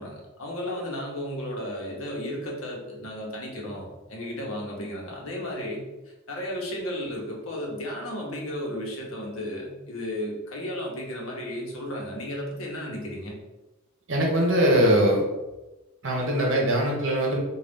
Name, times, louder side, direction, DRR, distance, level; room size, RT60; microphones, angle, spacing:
voice 1, 0.0-5.8 6.3-13.4, left 1 dB, 70° left, -2 dB, 0.9 m, -34 dB
voice 2, 14.1-15.2 16.0-17.4, right 1 dB, 60° right, -1 dB, 0.9 m, -21 dB
3.8 x 2.4 x 3.5 m, 1.1 s
head